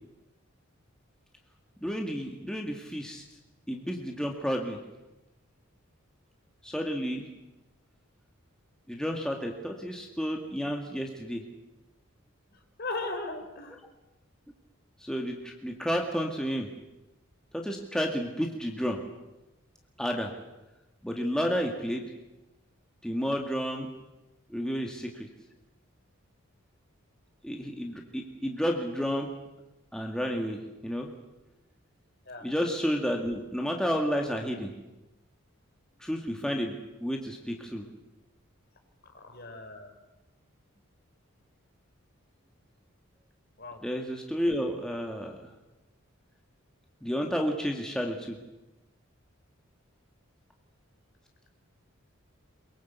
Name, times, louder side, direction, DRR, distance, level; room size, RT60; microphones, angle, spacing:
voice 1, 1.8-3.2 3.7-4.8 6.6-7.3 8.9-11.4 15.0-16.7 17.5-19.0 20.0-20.3 21.0-22.0 23.0-23.9 24.5-25.3 27.4-29.3 29.9-31.1 32.4-34.7 36.0-36.8 37.0-37.8 43.8-45.4 47.0-48.4, equal, 5° left, 1 dB, 2.0 m, -31 dB
voice 2, 12.5-13.8 32.3-32.4 39.1-39.9 43.6-43.8, left 2 dB, 50° left, 6 dB, 3.9 m, -37 dB
23.0 x 22.5 x 8.2 m, 1.0 s
head